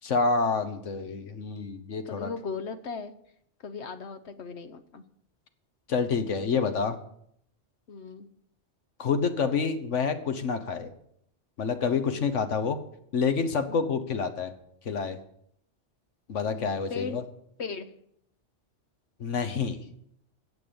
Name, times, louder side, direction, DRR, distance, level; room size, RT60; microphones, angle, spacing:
voice 1, 0.0-2.3 5.9-7.0 9.0-10.9 11.6-12.8 13.1-14.5 14.8-15.2 16.3-17.2 19.2-19.8, left 5 dB, 85° left, 9 dB, 1.5 m, -28 dB
voice 2, 2.0-3.1 3.6-5.0 7.9-8.3 12.1-12.3 13.7-13.9 16.5-17.2 17.6-17.9, left 4 dB, 65° left, 10 dB, 1.2 m, -38 dB
17.0 x 6.0 x 7.1 m, 0.72 s
omnidirectional pair, 1.2 m